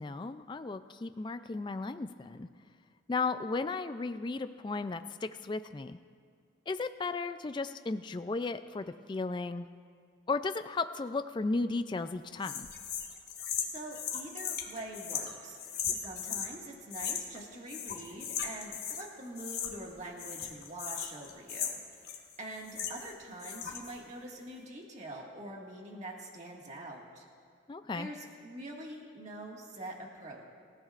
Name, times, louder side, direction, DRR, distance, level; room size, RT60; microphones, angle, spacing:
voice 1, 0.0-2.5 3.1-6.0 6.7-9.7 10.3-12.7 27.7-28.1, left 3 dB, 25° left, 10 dB, 0.3 m, -35 dB
sound 1, 12.4-16.5 16.9-17.4 17.7-19.1 19.4-19.9 20.2-23.1 23.4-24.0, left 8 dB, 50° left, 1.3 m, -37 dB
voice 2, 13.6-15.6 15.9-27.3 27.9-30.5, right 1 dB, 35° right, -1 dB, 1.9 m, -45 dB
25.5 x 15.0 x 2.5 m, 2.1 s
head